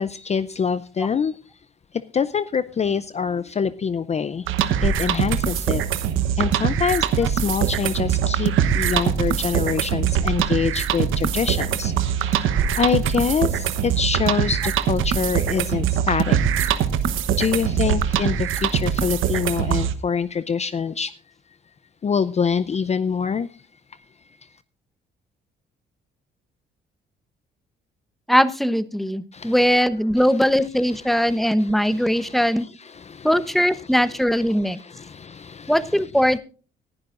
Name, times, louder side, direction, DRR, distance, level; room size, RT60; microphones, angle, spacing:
voice 1, 0.0-1.4 1.9-4.5 4.8-5.8 6.4-16.7 17.3-21.1 22.0-23.5 29.3-29.5 30.9-33.3 34.5-35.9, left 6 dB, 35° left, 15 dB, 0.5 m, -25 dB
sound 1, 4.5-19.9, right 9 dB, 85° right, 1.1 m, -22 dB
voice 2, 28.3-32.7 33.2-34.8 35.7-36.4, equal, ahead, 14 dB, 0.9 m, -20 dB
19.5 x 11.0 x 2.5 m, 0.35 s
cardioid pair, 90°, 20 cm